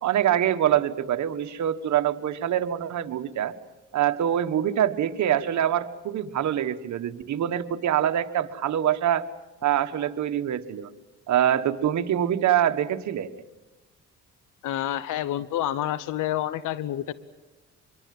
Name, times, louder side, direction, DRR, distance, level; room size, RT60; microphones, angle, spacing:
voice 1, 0.0-3.5 3.9-9.2 9.6-10.9 11.3-13.3, right 10 dB, 70° right, 9 dB, 1.5 m, -24 dB
voice 2, 14.6-17.1, left 12 dB, 85° left, 17 dB, 0.9 m, -28 dB
25.5 x 23.0 x 7.8 m, 1.1 s
cardioid pair, 90°, 30 cm